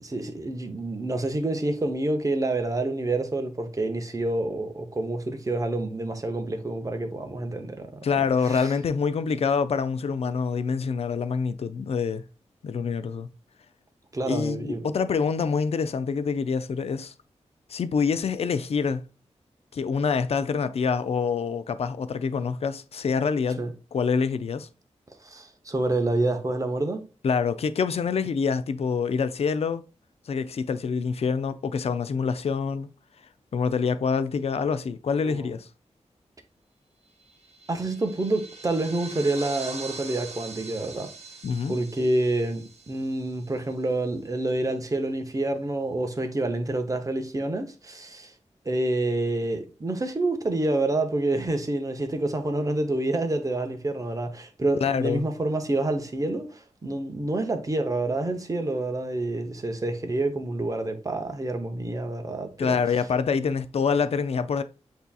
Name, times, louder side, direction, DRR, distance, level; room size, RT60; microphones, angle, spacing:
voice 1, 0.0-8.7 14.1-14.9 23.6-23.7 25.2-27.0 35.2-35.5 37.7-41.1 41.7-48.3 48.6-62.8, right 2 dB, 30° right, 0.8 m, -28 dB
voice 2, 8.0-12.2 12.6-13.3 14.3-17.1 17.7-19.0 19.7-23.6 23.9-24.7 27.2-29.8 30.3-32.9 33.5-35.7 41.4-41.7 54.8-55.3 62.6-64.6, left 5 dB, 60° left, 0.4 m, -26 dB
sound 1, 37.2-44.0, right 4 dB, 60° right, 1.0 m, -43 dB
8.0 x 2.8 x 2.3 m
wide cardioid pair, 90°, 12 cm